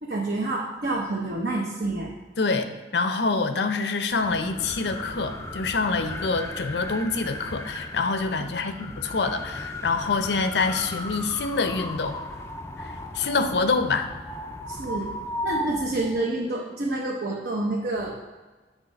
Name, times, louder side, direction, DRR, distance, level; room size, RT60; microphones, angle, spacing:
voice 1, 0.0-2.1 8.5-8.6 8.9-9.0 14.7-15.1 15.4-18.1, right 2 dB, 60° right, -2 dB, 0.8 m, -28 dB
voice 2, 2.4-2.7 2.9-12.2 12.8-14.1, left 4 dB, 80° left, 8 dB, 0.6 m, -26 dB
sound 1, 4.1-16.3, left 2 dB, 15° left, 0.4 m, -36 dB
8.2 x 3.6 x 5.3 m, 1.3 s
head